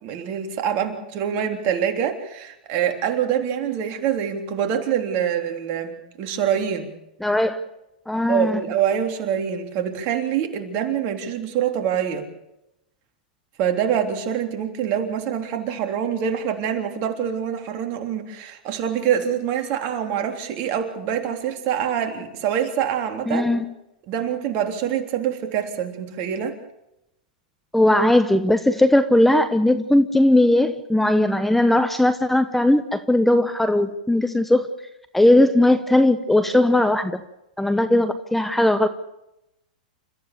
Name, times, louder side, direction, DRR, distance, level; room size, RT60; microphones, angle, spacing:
voice 1, 0.0-6.9 8.3-12.3 13.6-23.5 24.1-26.6, right 9 dB, 45° right, 4 dB, 3.5 m, -25 dB
voice 2, 7.2-7.6 8.1-8.6 23.3-23.7 27.7-34.7 35.1-37.2 37.6-38.9, left 1 dB, 5° left, 10 dB, 1.0 m, -18 dB
29.5 x 14.5 x 6.9 m, 0.87 s
hypercardioid pair, 110°, 5 cm